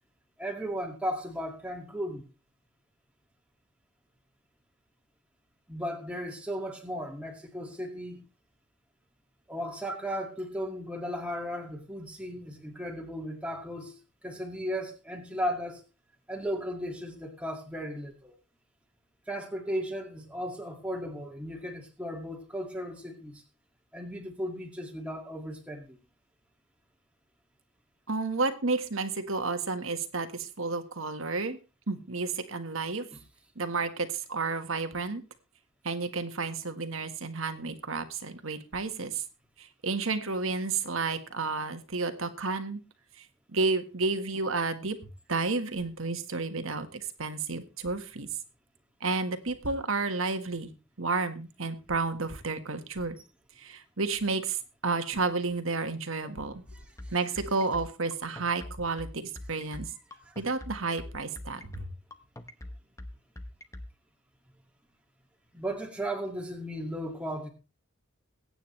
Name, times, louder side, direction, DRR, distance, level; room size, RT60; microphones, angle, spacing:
voice 1, 0.4-2.3 5.7-8.3 9.5-15.8 16.3-18.3 19.3-23.4 23.9-26.0 33.1-33.2 57.0-57.1 60.2-60.4 65.5-67.5, equal, 5° right, 1 dB, 2.2 m, -36 dB
voice 2, 28.1-31.6 31.9-33.0 33.5-35.2 35.8-39.2 39.6-42.8 43.2-43.3 43.5-45.0 45.3-48.3 49.0-50.7 51.0-53.2 53.6-56.6 57.1-59.9 60.4-61.9, right 3 dB, 65° right, 9 dB, 1.5 m, -31 dB
sound 1, 56.7-63.9, left 1 dB, 15° left, 0.8 m, -42 dB
21.5 x 9.2 x 3.3 m, 0.30 s
head